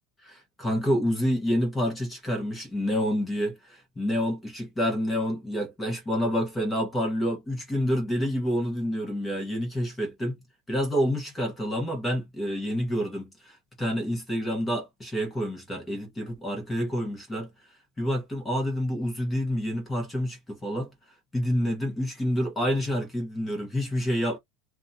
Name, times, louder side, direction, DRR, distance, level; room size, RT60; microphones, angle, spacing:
voice 1, 0.2-17.5 18.0-20.9 21.3-24.4, equal, 10° left, 0.9 m, -28 dB
2.7 x 2.2 x 2.6 m
supercardioid pair, 175°, 0 cm